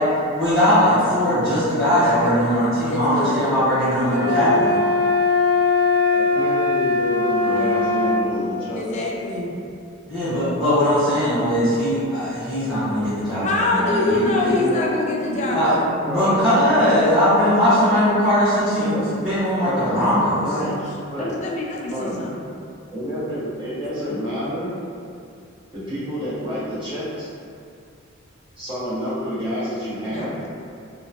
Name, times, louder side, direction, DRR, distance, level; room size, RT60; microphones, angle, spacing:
voice 1, 0.3-4.7 7.4-7.8 10.1-13.7 14.1-14.6 15.5-15.7 16.0-20.5, equal, 5° left, -18 dB, 0.9 m, -20 dB
voice 2, 1.9-2.4 2.9-3.5 4.1-4.5 8.7-9.5 13.4-15.9 19.8-20.9 21.2-22.4 30.1-30.3, left 2 dB, 35° left, -2 dB, 0.3 m, -25 dB
sound 1, 4.0-8.2, left 3 dB, 70° right, 0.7 m, -20 dB
voice 3, 6.0-8.9 13.3-13.5 13.7-15.5 15.8-17.0 18.8-19.1 19.6-19.9 20.4-21.4 21.9-22.2 22.9-24.7 25.7-27.3 28.6-30.4, equal, 25° right, -12 dB, 0.9 m, -28 dB
2.8 x 2.1 x 2.5 m, 2.4 s
head